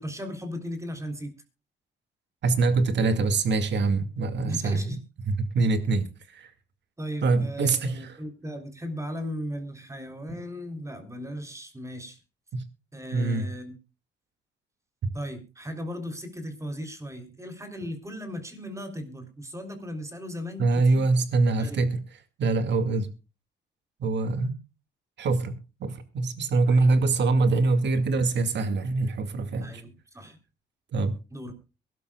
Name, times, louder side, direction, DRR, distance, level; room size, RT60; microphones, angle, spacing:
voice 1, 0.0-1.4 4.4-5.0 7.0-12.2 12.9-13.8 15.1-21.0 21.6-21.8 26.7-26.9 29.6-30.4 31.3-31.5, equal, 15° right, 3.5 m, -37 dB
voice 2, 2.4-4.8 5.3-6.1 6.3-6.5 7.2-8.1 10.3-10.4 12.5-12.6 13.1-13.5 20.6-22.0 22.4-23.1 24.0-24.6 25.2-29.8 30.9-31.1, right 3 dB, 60° right, 2.2 m, -24 dB
23.0 x 12.0 x 2.3 m
cardioid pair, 90°, 20 cm